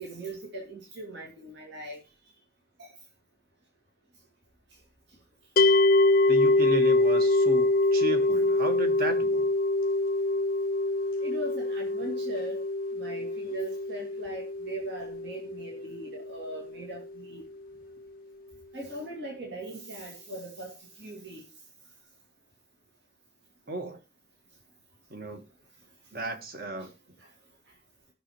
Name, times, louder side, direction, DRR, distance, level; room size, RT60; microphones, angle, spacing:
voice 1, 0.0-2.0 2.8-2.9 11.2-12.6 12.9-17.4 18.7-21.4 26.8-26.9 27.2-27.3, right 2 dB, 65° right, 2.3 m, -40 dB
sound 1, 5.6-16.7, left 2 dB, 45° left, 0.5 m, -25 dB
voice 2, 6.3-9.5 23.7-24.0 25.1-25.4 26.1-26.9, equal, 50° right, 1.7 m, -34 dB
19.0 x 6.4 x 3.1 m
head